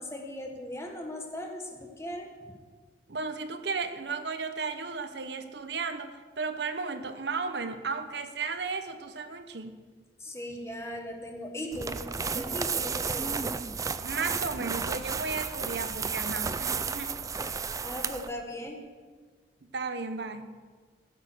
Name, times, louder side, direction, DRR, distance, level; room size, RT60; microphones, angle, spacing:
voice 1, 0.0-2.3 10.2-13.5 17.8-18.8, left 1 dB, 15° left, 2 dB, 1.5 m, -38 dB
voice 2, 3.1-9.8 14.0-17.1 19.6-20.5, right 4 dB, 70° right, 9 dB, 0.8 m, -34 dB
sound 1, 11.7-18.3, right 5 dB, 20° right, 0.3 m, -32 dB
15.0 x 7.2 x 6.3 m, 1.5 s
head